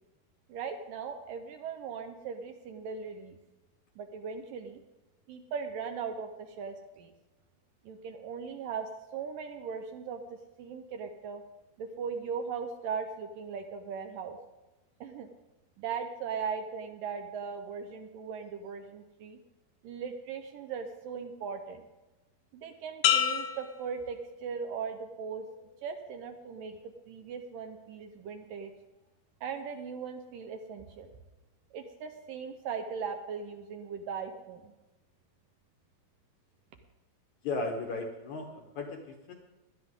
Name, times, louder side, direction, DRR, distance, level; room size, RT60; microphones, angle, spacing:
voice 1, 0.5-3.4 4.0-4.8 5.3-7.1 7.8-11.4 11.8-14.4 15.0-15.3 15.8-19.4 19.8-21.9 22.5-25.5 25.8-26.8 27.1-28.7 29.4-31.1 31.7-34.7, right 6 dB, 75° right, 6 dB, 2.2 m, -39 dB
sound 1, 23.0-24.8 25.3-25.8, left 9 dB, 85° left, 3.0 m, -30 dB
voice 2, 37.4-39.3, left 3 dB, 65° left, 2 dB, 1.9 m, -36 dB
18.5 x 12.0 x 3.7 m, 1.1 s
omnidirectional pair, 4.5 m